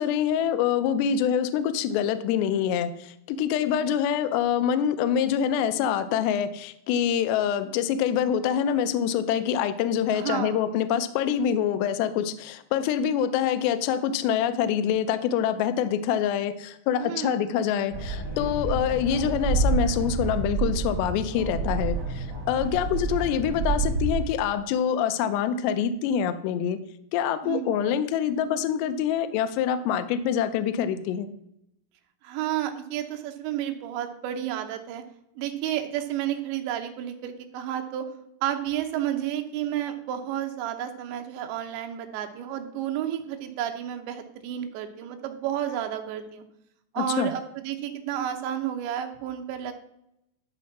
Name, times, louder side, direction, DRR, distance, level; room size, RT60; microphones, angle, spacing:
voice 1, 0.0-26.8 27.1-31.3 47.0-47.3, left 9 dB, 80° left, 11 dB, 2.7 m, -25 dB
voice 2, 10.1-10.6 17.0-17.4 27.4-27.8 32.2-35.0 35.4-38.1 38.4-46.5 46.9-49.7, right 11 dB, 80° right, 5 dB, 3.2 m, -31 dB
sound 1, 17.9-24.3, right 4 dB, 45° right, 2.6 m, -28 dB
12.5 x 4.5 x 5.9 m, 0.80 s
omnidirectional pair, 5.2 m